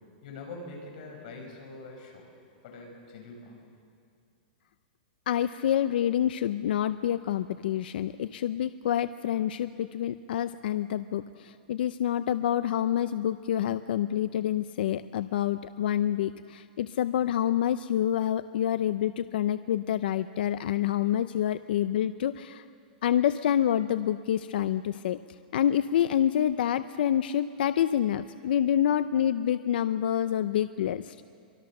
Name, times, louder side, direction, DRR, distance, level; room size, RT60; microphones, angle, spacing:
voice 1, 0.2-2.3 2.6-3.6, left 3 dB, 55° left, 1 dB, 6.8 m, -44 dB
voice 2, 5.3-22.6 23.0-25.2 25.5-31.2, left 10 dB, 75° left, 13 dB, 0.6 m, -27 dB
24.0 x 23.0 x 6.7 m, 2.3 s
supercardioid pair, 155°, 5 cm